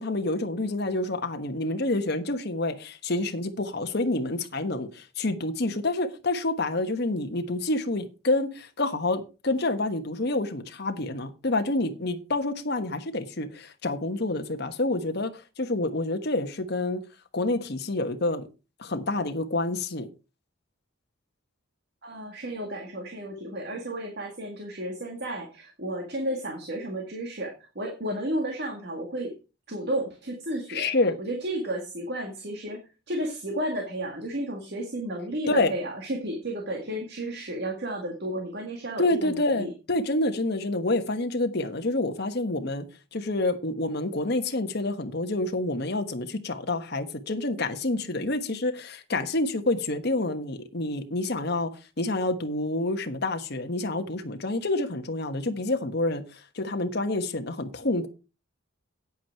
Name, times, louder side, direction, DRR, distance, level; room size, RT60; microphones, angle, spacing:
voice 1, 0.0-15.3 15.6-17.0 17.3-18.4 18.8-20.1 30.7-31.2 35.5-35.7 39.0-42.9 43.1-51.7 52.0-56.2 56.5-58.1, left 2 dB, 55° left, 1.2 m, -28 dB
voice 2, 22.0-29.3 29.7-30.9 31.2-39.7, right 1 dB, 55° right, 1.9 m, -33 dB
9.2 x 8.5 x 4.5 m
head